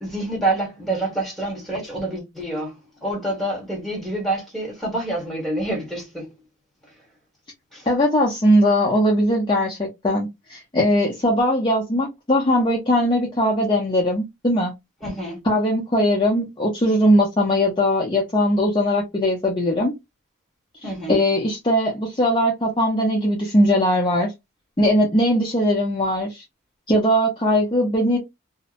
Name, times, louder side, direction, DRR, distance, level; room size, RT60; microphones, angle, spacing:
voice 1, 0.0-2.8 3.0-6.3 7.7-7.9 15.0-15.4 20.8-21.2, right 2 dB, ahead, 1.2 m, -27 dB
voice 2, 7.9-14.7 15.4-19.9 21.1-24.3 24.8-26.4 26.9-28.2, equal, 25° left, 0.5 m, -20 dB
2.6 x 2.1 x 2.4 m
head